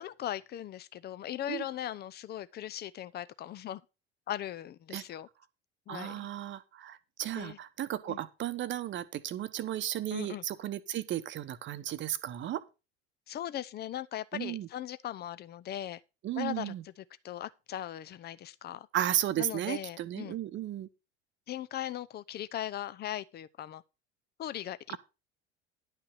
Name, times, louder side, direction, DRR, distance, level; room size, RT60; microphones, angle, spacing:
voice 1, 0.0-3.8 4.3-5.3 5.9-6.2 7.3-7.6 8.1-8.2 10.1-10.4 13.3-16.0 16.4-18.9 19.4-20.4 21.5-23.8 24.4-25.0, left 12 dB, 30° left, 0.7 m, -39 dB
voice 2, 5.9-12.6 14.3-14.7 16.2-16.8 18.9-20.9, right 12 dB, 35° right, 1.0 m, -34 dB
11.0 x 5.7 x 5.6 m
figure-of-eight pair, 70°, 33 cm